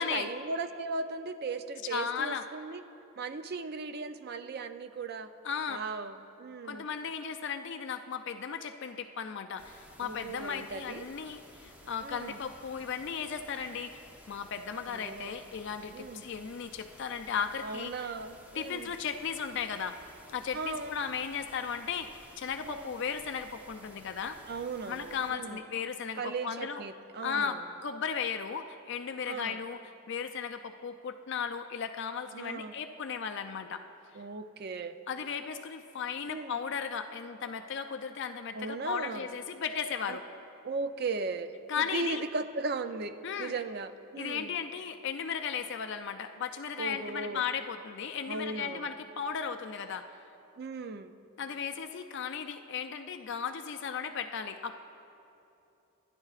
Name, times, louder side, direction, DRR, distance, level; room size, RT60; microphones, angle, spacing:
voice 1, 0.0-2.8 3.2-5.3 5.7-6.9 10.0-11.1 12.0-12.4 14.9-15.3 15.9-16.3 17.6-18.9 20.5-20.9 22.6-22.9 24.5-25.6 26.2-27.7 29.3-29.6 32.3-32.7 34.1-35.0 36.3-36.6 38.5-39.3 40.1-40.2 40.6-41.5 41.9-44.6 46.8-47.4 48.3-48.9 50.6-51.1, right 3 dB, 45° right, 10 dB, 0.4 m, -37 dB
voice 2, 1.9-2.5 5.4-5.8 6.6-18.1 18.5-20.0 20.3-24.4 24.9-26.8 27.2-29.8 30.1-33.8 35.1-40.2 41.7-42.2 43.2-43.5 44.2-50.0 51.4-54.8, left 6 dB, 55° left, 7 dB, 0.4 m, -36 dB
sound 1, 9.6-25.3, equal, 10° right, 0.8 m, -55 dB
27.0 x 10.5 x 2.4 m, 2.8 s
head